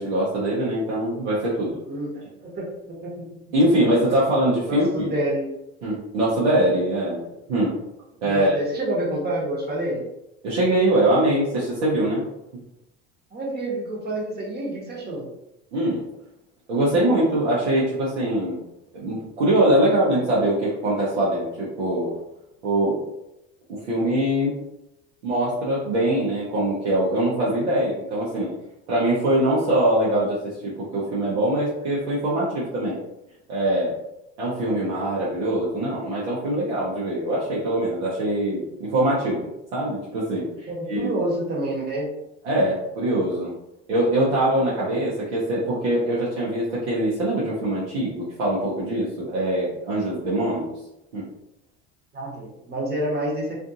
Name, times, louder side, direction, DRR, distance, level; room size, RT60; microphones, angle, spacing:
voice 1, 0.0-1.7 3.5-5.1 5.8-7.2 7.5-7.8 8.2-8.5 10.4-12.2 15.7-16.0 16.7-18.6 18.9-22.1 22.6-23.0 23.7-24.6 25.2-28.5 28.9-33.0 33.5-33.9 34.4-41.1 42.4-43.5 43.9-50.7 51.1-51.3, right 1 dB, 90° right, -7 dB, 0.8 m, -23 dB
voice 2, 1.9-3.2 4.7-5.5 8.2-10.1 13.3-15.3 40.7-42.1 52.1-53.6, right 1 dB, 30° right, -2 dB, 1.0 m, -28 dB
2.5 x 2.4 x 2.6 m, 0.87 s
supercardioid pair, 85°, 33 cm